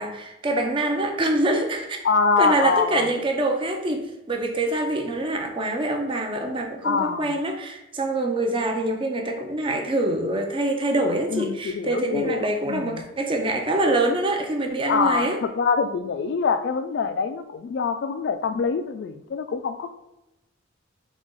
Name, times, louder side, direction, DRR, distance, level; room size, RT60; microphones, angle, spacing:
voice 1, 0.0-2.1 2.4-15.4, right 2 dB, 25° right, 4 dB, 0.5 m, -25 dB
voice 2, 2.0-3.0 6.8-7.3 11.3-12.9 14.9-19.9, left 5 dB, 60° left, 9 dB, 0.3 m, -24 dB
4.0 x 3.0 x 3.7 m, 0.93 s
head